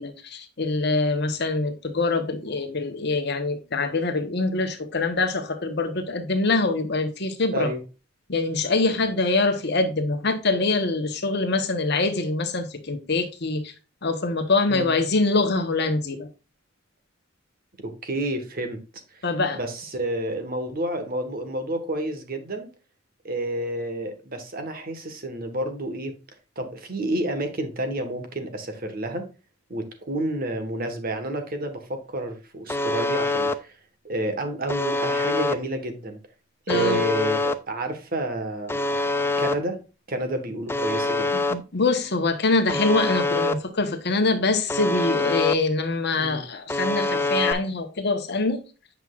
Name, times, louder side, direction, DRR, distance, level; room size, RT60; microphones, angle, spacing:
voice 1, 0.0-7.7 8.3-13.7 14.0-16.3 19.2-19.6 36.7-37.0 41.5-48.6, left 3 dB, 55° left, 1.1 m, -24 dB
voice 2, 17.8-18.8 19.1-19.2 19.5-22.7 23.2-26.1 26.6-29.3 29.7-33.8 34.0-36.2 36.7-38.9 39.4-39.8 40.1-41.3 46.2-46.4, right 1 dB, 50° right, 1.4 m, -30 dB
Alarm, 32.7-33.5 34.7-35.5 36.7-37.5 38.7-39.5 40.7-41.5 42.7-43.5 44.7-45.5 46.7-47.5, left 2 dB, 10° left, 0.4 m, -24 dB
7.9 x 5.9 x 2.4 m
head